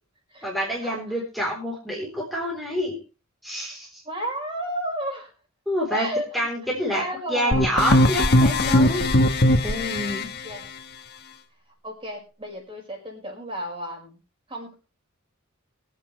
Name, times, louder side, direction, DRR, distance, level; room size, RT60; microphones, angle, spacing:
voice 1, 0.4-3.0 3.4-4.0 5.7-6.1 6.3-7.0 7.3-9.1 9.6-10.3, equal, ahead, -4 dB, 3.7 m, -27 dB
voice 2, 4.0-5.3 5.9-6.5 6.9-7.8 10.4-10.7 11.8-14.2 14.5-14.8, equal, 25° right, 0 dB, 5.2 m, -32 dB
sound 1, 7.5-10.2, left 1 dB, 50° left, 1.3 m, -19 dB
23.0 x 8.5 x 3.3 m, 0.32 s
head